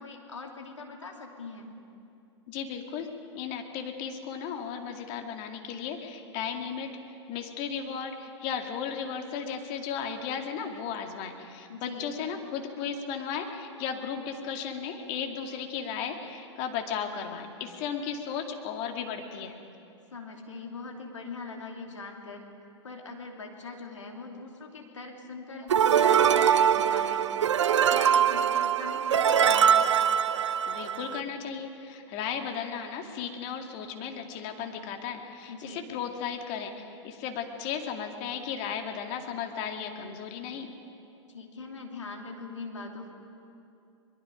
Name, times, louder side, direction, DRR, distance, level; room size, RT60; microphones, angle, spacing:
voice 1, 0.0-1.7 11.7-12.1 20.1-22.5 22.8-27.2 27.7-29.9 35.5-35.8 41.3-43.1, left 4 dB, 85° left, 2 dB, 2.9 m, -41 dB
voice 2, 2.5-3.1 3.3-6.9 7.3-19.5 30.7-40.7, left 7 dB, 45° left, 4 dB, 2.4 m, -35 dB
sound 1, 25.7-31.2, right 8 dB, 75° right, 0.6 m, -23 dB
23.5 x 22.0 x 5.2 m, 2.6 s
hypercardioid pair, 105°, 15 cm